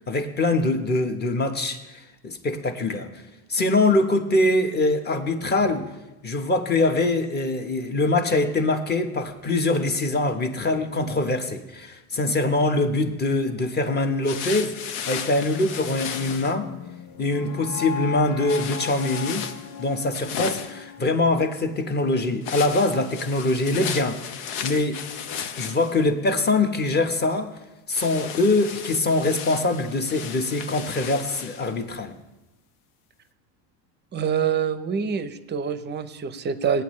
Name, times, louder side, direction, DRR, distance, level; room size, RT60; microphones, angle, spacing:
voice 1, 0.1-3.1 3.5-5.9 6.2-14.8 15.1-16.7 17.2-19.5 19.8-25.0 25.5-27.5 27.9-32.1, left 2 dB, 20° left, 1.1 m, -23 dB
sound 1, 14.2-16.5 18.5-20.8 22.4-26.1 27.9-31.7, left 7 dB, 75° left, 1.1 m, -35 dB
sound 2, 16.1-22.2, left 7 dB, 40° left, 1.4 m, -37 dB
voice 2, 34.1-36.8, right 7 dB, 25° right, 0.7 m, -26 dB
18.5 x 9.1 x 3.2 m
supercardioid pair, 125°, 46 cm